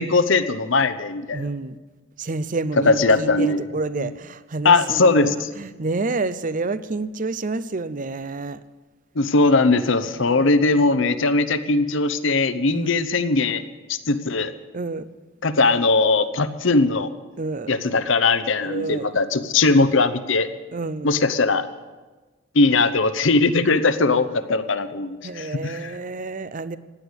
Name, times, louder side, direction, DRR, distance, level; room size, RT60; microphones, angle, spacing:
voice 1, 0.0-1.4 2.8-3.6 4.0-4.1 4.6-5.5 9.2-13.6 13.9-14.5 15.4-17.1 17.7-20.5 21.0-21.7 22.5-25.9, left 3 dB, 60° left, 11 dB, 0.8 m, -20 dB
voice 2, 1.3-1.8 2.2-8.6 10.2-10.7 12.7-12.9 14.7-15.1 17.4-17.7 18.6-19.1 20.7-21.1 25.2-26.8, right 3 dB, 40° right, 15 dB, 0.6 m, -29 dB
16.0 x 10.0 x 8.1 m, 1.3 s
head